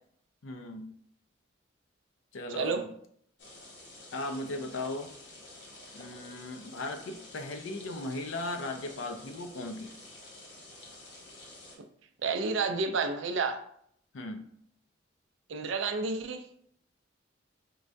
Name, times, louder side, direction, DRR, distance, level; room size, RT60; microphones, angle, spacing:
voice 1, 0.4-0.9 2.3-2.8 4.1-5.1 5.9-9.9 14.1-14.5, left 2 dB, 85° left, 6 dB, 0.5 m, -37 dB
sound 1, 3.4-11.8, left 2 dB, 60° left, 0.8 m, -50 dB
voice 2, 12.2-13.6 15.5-16.4, right 4 dB, 80° right, 7 dB, 0.4 m, -30 dB
4.7 x 2.2 x 2.5 m, 0.66 s
head